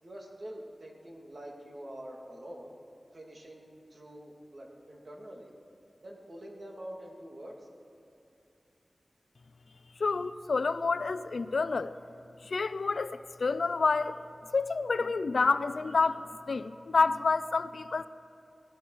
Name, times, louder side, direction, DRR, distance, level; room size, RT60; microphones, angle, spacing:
voice 1, 0.0-2.7 3.1-5.5 6.0-7.7, right 1 dB, 55° right, -1 dB, 2.4 m, -46 dB
voice 2, 10.0-11.9 12.4-14.2 14.5-18.1, left 4 dB, 80° left, 13 dB, 0.5 m, -28 dB
19.0 x 15.5 x 4.7 m, 2.7 s
wide cardioid pair, 70°, 0 cm